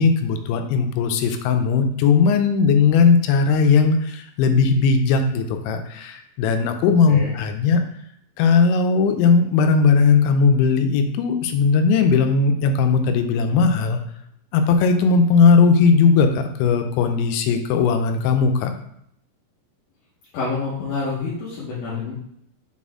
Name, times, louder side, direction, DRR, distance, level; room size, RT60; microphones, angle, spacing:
voice 1, 0.0-7.8 8.4-14.0 14.5-18.8, left 5 dB, 90° left, 6 dB, 3.0 m, -18 dB
voice 2, 20.3-22.1, left 4 dB, 65° left, -9 dB, 2.4 m, -27 dB
6.6 x 4.2 x 3.6 m, 0.71 s
omnidirectional pair, 5.2 m